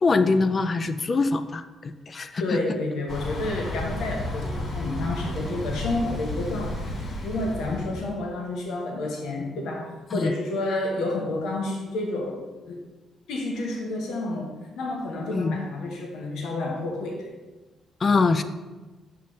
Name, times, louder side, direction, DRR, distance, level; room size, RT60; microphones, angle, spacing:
voice 1, 0.0-2.4 10.1-10.3 15.3-15.6 18.0-18.4, left 3 dB, 40° left, 11 dB, 0.4 m, -23 dB
voice 2, 2.4-6.9 7.2-12.8 13.3-17.3, left 2 dB, 80° left, 0 dB, 1.0 m, -30 dB
Thunder / Bicycle, 3.1-8.1, left 1 dB, 60° left, 1.3 m, -32 dB
6.0 x 5.9 x 3.1 m, 1.2 s
cardioid pair, 90°, 0 cm